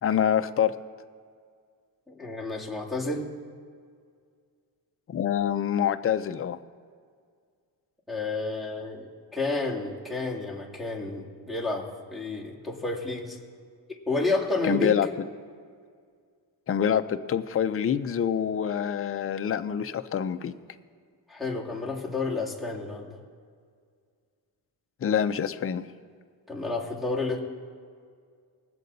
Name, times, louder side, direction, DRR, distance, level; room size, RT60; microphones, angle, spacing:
voice 1, 0.0-0.7 5.1-6.6 14.7-15.1 16.7-20.5 25.0-25.9, left 8 dB, 35° left, 9 dB, 0.6 m, -26 dB
voice 2, 2.1-3.3 8.1-13.4 14.1-14.9 21.3-23.2 26.5-27.4, left 3 dB, ahead, -2 dB, 2.2 m, -30 dB
20.5 x 7.7 x 4.0 m, 2.1 s
cardioid pair, 105°, 41 cm